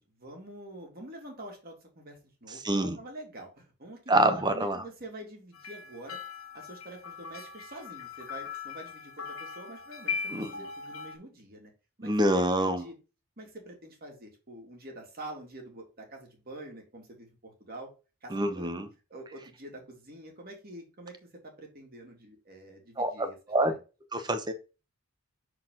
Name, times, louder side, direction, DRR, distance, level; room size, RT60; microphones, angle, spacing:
voice 1, 0.0-6.2 6.5-11.7 12.0-12.9 13.4-17.9 18.2-18.7 19.1-23.8, right 1 dB, 45° right, 2.3 m, -46 dB
voice 2, 2.5-3.0 4.1-4.8 10.3-10.5 12.0-12.8 18.3-18.9 23.0-23.7 24.1-24.5, right 1 dB, 20° right, 0.8 m, -26 dB
sound 1, 5.5-11.2, left 5 dB, 70° left, 1.6 m, -39 dB
6.1 x 4.6 x 3.8 m
head